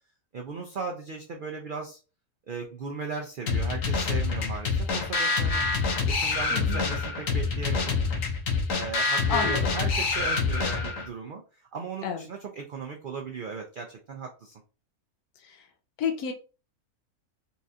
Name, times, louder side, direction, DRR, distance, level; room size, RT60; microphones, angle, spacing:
voice 1, 0.3-2.0 2.5-5.6 6.1-8.0 8.7-14.6, right 4 dB, 90° right, 2 dB, 0.4 m, -37 dB
sound 1, 3.5-11.1, left 4 dB, 65° left, 1.2 m, -26 dB
voice 2, 6.5-6.8 9.3-9.7 12.0-12.2 15.4-15.7 16.0-16.3, left 7 dB, 90° left, 3 dB, 1.1 m, -30 dB
4.2 x 2.4 x 2.7 m, 0.34 s
omnidirectional pair, 1.5 m